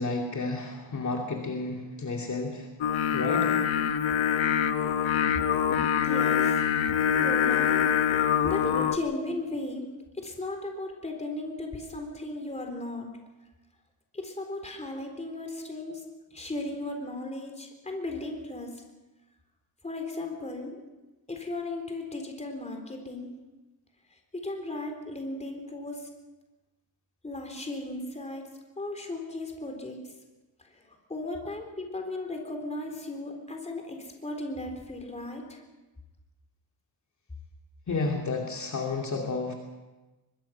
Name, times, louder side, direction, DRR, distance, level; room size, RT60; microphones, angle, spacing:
voice 1, 0.0-2.7 3.1-3.5 37.9-39.5, left 3 dB, 40° left, 0 dB, 2.6 m, -31 dB
Singing, 2.8-9.0, left 8 dB, 80° left, 1.3 m, -25 dB
voice 2, 6.0-6.6 7.2-7.8 8.4-13.1 14.1-16.0 16.3-18.8 19.8-20.8 21.3-23.3 24.3-26.1 27.2-28.5 28.8-30.1 30.6-35.6, left 2 dB, 15° left, 3 dB, 3.8 m, -36 dB
23.5 x 22.0 x 5.8 m, 1.1 s
wide cardioid pair, 150°, 46 cm